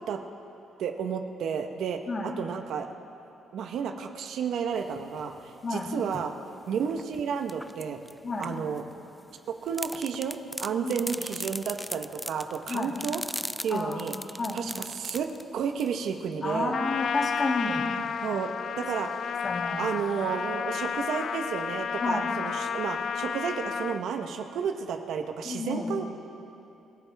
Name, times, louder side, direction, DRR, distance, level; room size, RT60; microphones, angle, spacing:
voice 1, 0.8-2.9 3.5-6.3 6.7-8.0 8.4-8.8 9.5-13.2 13.6-14.2 14.5-16.7 18.2-18.5 18.8-19.5 19.8-26.1, right 7 dB, 75° right, 5 dB, 1.0 m, -32 dB
sound 1, 4.8-6.3 6.8-8.9 9.6-16.3, equal, ahead, 0.4 m, -39 dB
voice 2, 13.7-14.6 16.4-17.9 19.4-19.9 22.0-22.3 25.4-25.9, left 3 dB, 35° left, 0 dB, 2.3 m, -31 dB
Trumpet, 16.7-24.0, left 7 dB, 60° left, 0.5 m, -32 dB
27.0 x 13.5 x 3.5 m, 2.9 s
cardioid pair, 90°, 0 cm